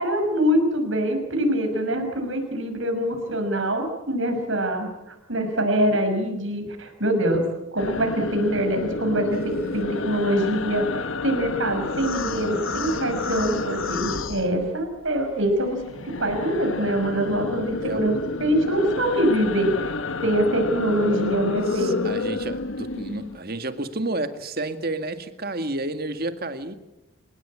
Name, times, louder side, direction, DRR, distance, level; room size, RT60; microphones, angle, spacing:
voice 1, 0.0-4.9 5.3-7.5 7.7-15.8 16.2-19.9 20.2-22.0, equal, 65° right, 5 dB, 5.9 m, -24 dB
sound 1, 7.8-15.1 15.4-23.4, left 3 dB, 65° left, 1.2 m, -30 dB
voice 2, 9.3-9.9 17.8-18.1 21.7-26.7, right 2 dB, 45° right, 9 dB, 1.9 m, -31 dB
29.0 x 17.5 x 8.7 m, 0.95 s
head